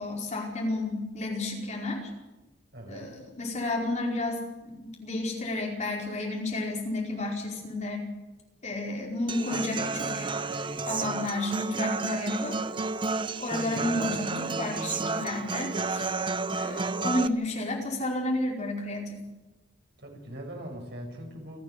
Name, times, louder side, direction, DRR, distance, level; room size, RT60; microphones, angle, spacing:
voice 1, 0.0-2.1 2.9-8.1 8.6-10.3 10.9-12.6 13.4-16.1 16.5-19.2, left 2 dB, 40° left, -1 dB, 5.0 m, -32 dB
voice 2, 2.7-3.1 13.8-14.2 20.0-21.6, right 1 dB, 65° right, 2 dB, 6.2 m, -41 dB
Human voice / Acoustic guitar, 9.3-17.3, right 3 dB, 25° right, 0.7 m, -31 dB
29.0 x 9.9 x 10.0 m, 1.1 s
head